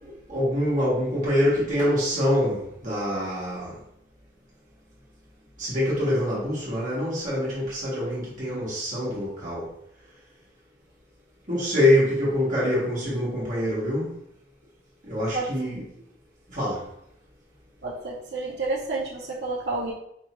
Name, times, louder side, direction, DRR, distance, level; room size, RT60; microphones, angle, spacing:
voice 1, 0.0-3.7 5.6-9.7 11.5-14.1 15.0-15.8 16.5-16.8, left 1 dB, 45° right, -7 dB, 1.4 m, -25 dB
voice 2, 17.8-19.9, right 3 dB, 65° right, -4 dB, 0.7 m, -30 dB
4.7 x 2.7 x 3.0 m, 0.76 s
head